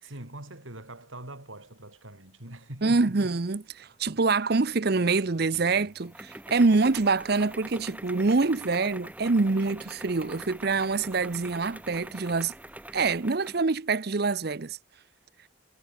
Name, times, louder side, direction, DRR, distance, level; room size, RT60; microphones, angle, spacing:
voice 1, 0.0-3.4, right 1 dB, 80° right, 5.9 m, -43 dB
voice 2, 2.8-12.5 12.9-14.8, right 3 dB, 50° right, 0.7 m, -25 dB
sound 1, 4.9-13.7, right 1 dB, 10° right, 2.3 m, -44 dB
head